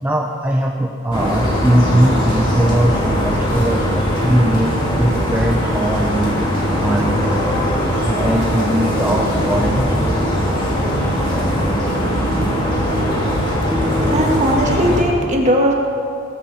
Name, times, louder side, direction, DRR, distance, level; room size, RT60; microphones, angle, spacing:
voice 1, 0.0-6.3 6.8-7.7 8.0-10.0, right 1 dB, 10° right, -1 dB, 0.8 m, -19 dB
sound 1, 1.1-15.0, equal, 20° left, 3.0 m, -19 dB
voice 2, 14.0-15.7, equal, 30° right, 0 dB, 2.2 m, -18 dB
19.0 x 16.0 x 4.4 m, 2.3 s
head